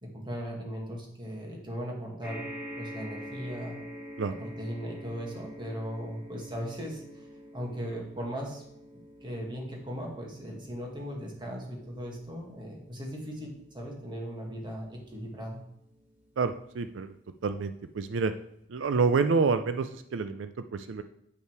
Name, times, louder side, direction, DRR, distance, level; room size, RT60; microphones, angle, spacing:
voice 1, 0.0-2.5 2.8-3.8 4.4-7.3 7.5-8.6 9.2-15.6, equal, 25° right, -1 dB, 2.0 m, -38 dB
sound 1, 2.2-16.8 17.5-17.6 17.9-18.0, equal, 10° right, 2.4 m, -46 dB
voice 2, 16.4-17.1 17.4-18.3 18.7-21.0, right 4 dB, 85° right, 10 dB, 0.4 m, -28 dB
8.7 x 5.5 x 4.6 m, 0.77 s
head